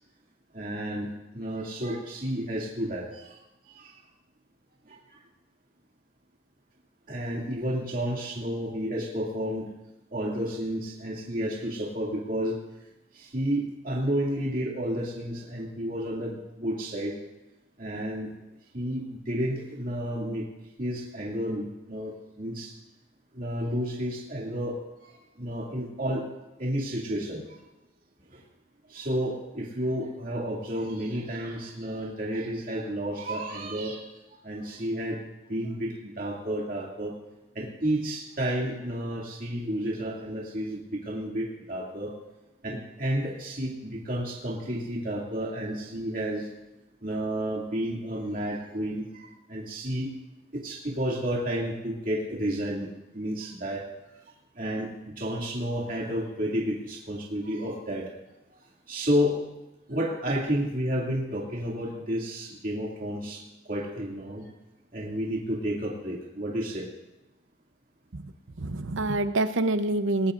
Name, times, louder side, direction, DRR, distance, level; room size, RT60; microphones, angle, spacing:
voice 1, 0.5-4.0 4.9-5.2 7.1-9.7 10.1-12.6 13.1-17.1 17.8-18.3 18.7-20.5 20.8-22.7 23.3-26.2 26.6-27.6 28.3-28.4 28.9-34.1 34.4-37.1 37.5-42.1 42.6-46.5 47.0-50.1 50.5-53.8 54.5-58.1 58.9-59.4 59.9-64.5 64.9-66.9, equal, 45° right, -4 dB, 2.5 m, -31 dB
voice 2, 68.6-70.3, right 2 dB, 75° right, 10 dB, 0.8 m, -26 dB
20.0 x 19.0 x 2.6 m, 0.98 s
head